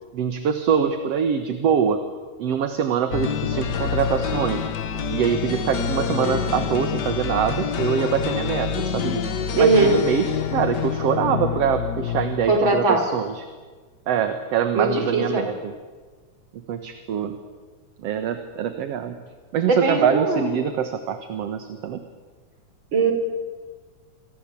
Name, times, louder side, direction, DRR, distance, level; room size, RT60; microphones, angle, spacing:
voice 1, 0.1-2.0 2.4-4.7 5.1-9.2 9.6-13.4 14.1-15.7 16.5-17.4 18.0-19.2 19.5-22.0, right 7 dB, 60° right, 8 dB, 2.3 m, -24 dB
sound 1, 3.1-12.9, left 7 dB, 55° left, 1.2 m, -27 dB
voice 2, 9.5-9.9 12.5-13.0 14.7-15.5 19.7-20.5 22.9-23.1, right 3 dB, 40° right, 6 dB, 4.7 m, -20 dB
27.5 x 23.0 x 8.3 m, 1.4 s
omnidirectional pair, 3.5 m